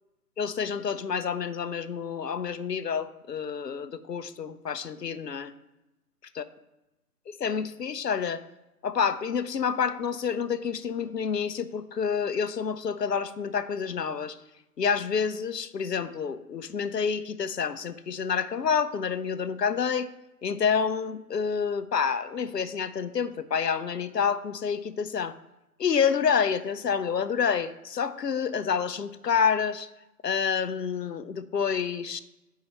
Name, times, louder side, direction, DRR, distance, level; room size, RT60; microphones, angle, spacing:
voice 1, 0.4-5.5 6.4-6.5 7.3-8.4 8.8-14.4 14.8-20.1 20.4-25.3 25.8-29.9 30.2-32.2, left 6 dB, 75° left, 12 dB, 0.7 m, -28 dB
8.7 x 4.7 x 3.0 m, 0.97 s
figure-of-eight pair, 160°, 49 cm